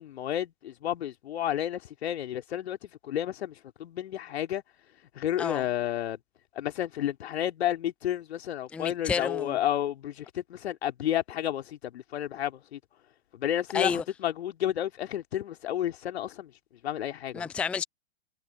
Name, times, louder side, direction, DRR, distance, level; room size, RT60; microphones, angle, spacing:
voice 1, 0.0-4.6 5.1-6.2 6.5-12.8 13.3-16.5 16.8-17.5, left 11 dB, 55° left, 3.0 m, -31 dB
voice 2, 8.7-9.6 13.7-14.0 17.3-17.8, left 6 dB, 5° left, 0.5 m, -30 dB
figure-of-eight pair, 110°, 38 cm